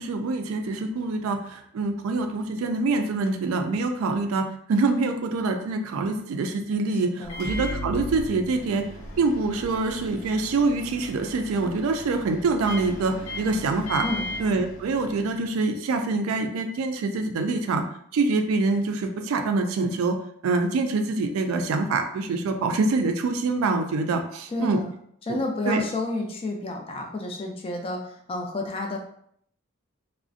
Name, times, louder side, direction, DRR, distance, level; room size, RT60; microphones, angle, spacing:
voice 1, 0.0-8.9 9.2-14.0 14.4-17.8 18.1-20.2 20.4-24.8 25.3-25.4 25.7-25.8, right 3 dB, 70° right, 5 dB, 0.3 m, -25 dB
voice 2, 7.1-7.4 14.0-14.3 24.5-24.9 25.2-29.0, left 2 dB, 25° left, 2 dB, 0.3 m, -30 dB
Microwave oven, 7.2-15.4, left 1 dB, 65° left, 0.7 m, -37 dB
2.4 x 2.0 x 2.5 m, 0.66 s
head